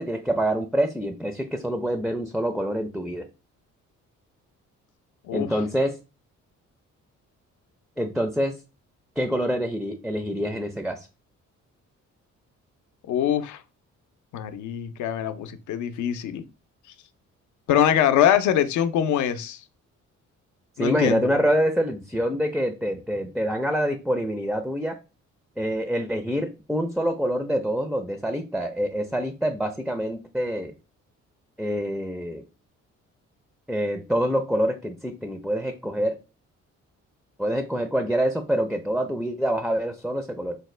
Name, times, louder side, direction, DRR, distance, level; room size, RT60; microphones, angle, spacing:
voice 1, 0.0-3.3 5.3-6.0 8.0-8.6 9.2-11.1 20.8-25.0 25.6-30.7 31.6-32.4 33.7-36.2 37.4-40.6, equal, ahead, 0.4 m, -26 dB
voice 2, 13.1-13.6 14.3-16.4 17.7-19.6 20.8-21.3, left 10 dB, 75° left, 0.5 m, -23 dB
4.2 x 2.1 x 3.1 m
cardioid pair, 90°, 30 cm